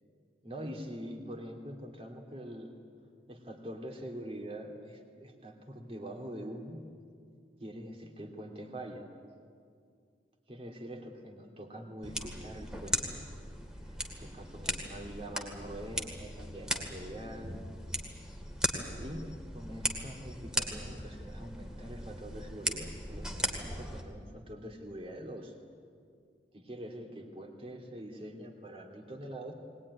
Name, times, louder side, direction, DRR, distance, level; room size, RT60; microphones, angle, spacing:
voice 1, 0.4-2.7 3.3-6.9 7.6-9.1 10.5-13.2 13.8-17.6 19.0-25.5 26.5-29.5, equal, 30° right, 2 dB, 2.7 m, -44 dB
sound 1, 12.0-24.0, equal, 5° right, 2.1 m, -38 dB
21.5 x 19.0 x 9.8 m, 2.2 s
head